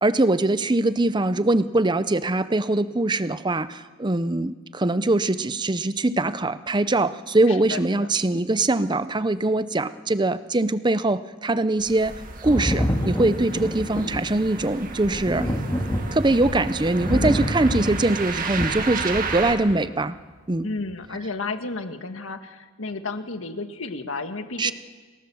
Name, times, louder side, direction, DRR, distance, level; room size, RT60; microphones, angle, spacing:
voice 1, 0.0-15.5 16.1-20.2 20.5-20.7 24.6-24.7, right 2 dB, 20° right, 14 dB, 0.7 m, -22 dB
voice 2, 7.5-8.1 20.6-24.7, left 3 dB, 85° left, 7 dB, 1.7 m, -32 dB
sound 1, 11.8-19.6, right 4 dB, 45° right, 2.0 m, -33 dB
Thunder, 12.4-19.8 20.9-21.0, equal, 15° left, 2.0 m, -28 dB
29.5 x 18.0 x 7.1 m, 1.4 s
head